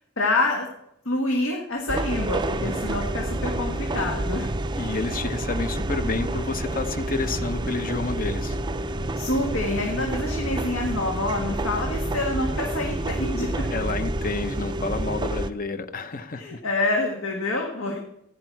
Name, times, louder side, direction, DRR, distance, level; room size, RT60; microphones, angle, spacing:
voice 1, 0.2-0.7 1.0-4.5 9.2-13.7 16.4-18.0, left 2 dB, 75° left, 0 dB, 1.6 m, -27 dB
sound 1, 1.9-15.5, right 1 dB, 20° right, 0.5 m, -28 dB
voice 2, 4.8-8.6 13.7-16.6, left 3 dB, 40° left, 10 dB, 0.8 m, -29 dB
15.0 x 9.8 x 4.7 m, 0.79 s
head